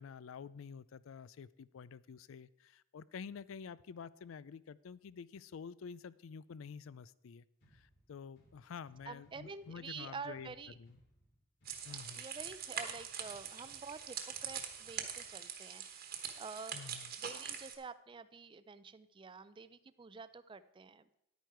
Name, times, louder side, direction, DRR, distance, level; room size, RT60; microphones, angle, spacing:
voice 1, 0.0-7.4 7.7-11.0 11.8-12.3 16.7-17.1, left 6 dB, 80° left, 19 dB, 0.4 m, -49 dB
sound 1, 7.6-15.6, equal, 60° left, 3.0 m, -69 dB
voice 2, 9.0-10.7 11.8-16.8 17.2-21.2, right 4 dB, 25° right, 14 dB, 0.4 m, -49 dB
sound 2, 11.7-17.8, right 8 dB, 50° right, 1.2 m, -43 dB
10.5 x 9.2 x 4.6 m, 0.81 s
head